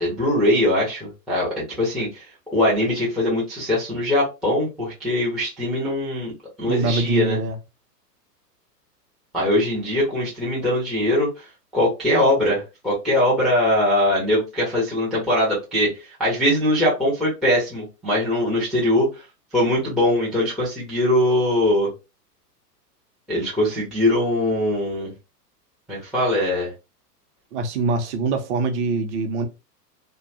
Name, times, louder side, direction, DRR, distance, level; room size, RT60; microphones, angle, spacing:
voice 1, 0.0-6.3 6.6-7.4 9.3-11.5 11.7-15.9 16.2-19.2 19.5-21.9 23.3-25.1 25.9-26.7, left 1 dB, ahead, 0.4 m, -21 dB
voice 2, 6.7-7.6 27.5-29.5, right 3 dB, 45° right, 0.7 m, -23 dB
2.6 x 2.3 x 2.5 m
hypercardioid pair, 110°, 49 cm